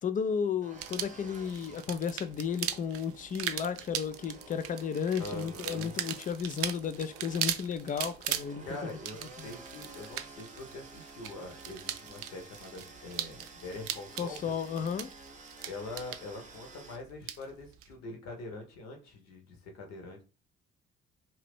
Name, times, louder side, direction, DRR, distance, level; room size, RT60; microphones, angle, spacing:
voice 1, 0.0-8.9 9.4-9.5 14.2-15.1, left 7 dB, 25° left, 0.4 m, -33 dB
sound 1, 0.6-17.0, right 3 dB, 25° right, 0.8 m, -52 dB
sound 2, 0.7-17.9, right 11 dB, 45° right, 0.5 m, -40 dB
voice 2, 5.2-5.9 8.6-14.5 15.6-20.2, left 2 dB, 55° left, 1.1 m, -44 dB
2.8 x 2.7 x 3.5 m
figure-of-eight pair, 45°, 31 cm